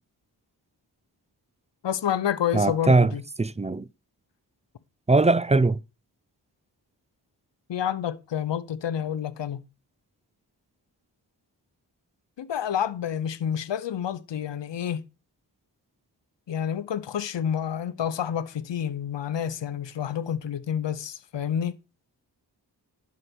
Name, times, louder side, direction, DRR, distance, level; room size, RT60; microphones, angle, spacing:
voice 1, 1.8-3.2 7.7-9.6 12.4-15.0 16.5-21.8, left 9 dB, 90° left, 0.8 m, -29 dB
voice 2, 2.5-3.1 3.4-3.9 5.1-5.8, right 3 dB, 15° right, 0.4 m, -20 dB
11.0 x 4.9 x 6.0 m
cardioid pair, 50°, 42 cm